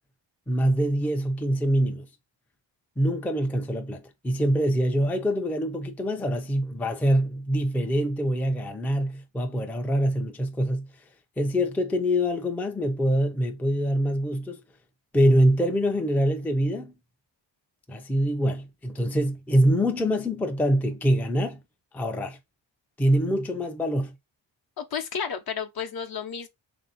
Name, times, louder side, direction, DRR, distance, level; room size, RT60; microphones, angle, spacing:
voice 1, 0.5-2.1 3.0-10.9 11.4-14.6 15.1-16.9 17.9-21.6 21.9-22.4 23.0-24.1, equal, 5° left, 0.4 m, -24 dB
voice 2, 24.8-26.5, left 7 dB, 50° left, 0.8 m, -32 dB
3.3 x 2.7 x 3.9 m
cardioid pair, 85°, 46 cm